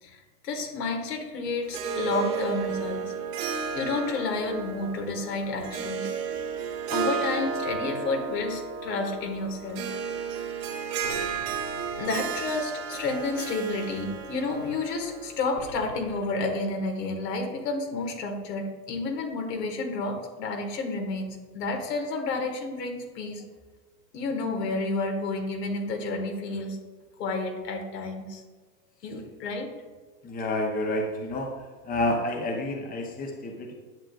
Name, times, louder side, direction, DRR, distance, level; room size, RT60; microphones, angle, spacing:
voice 1, 0.0-3.0 3.7-6.1 6.9-9.9 10.9-11.0 12.0-23.4 24.1-26.8 27.2-28.4 29.0-29.7, left 3 dB, 80° left, 2 dB, 2.0 m, -30 dB
Harp, 1.6-15.4, right 6 dB, 50° right, 1.4 m, -33 dB
sound 1, 11.0-12.5 15.6-17.1, left 3 dB, 55° left, 2.3 m, -45 dB
voice 2, 30.2-31.5 31.9-33.7, left 1 dB, 20° left, 2 dB, 1.0 m, -29 dB
10.5 x 7.1 x 2.5 m, 1.4 s
hypercardioid pair, 115°, 48 cm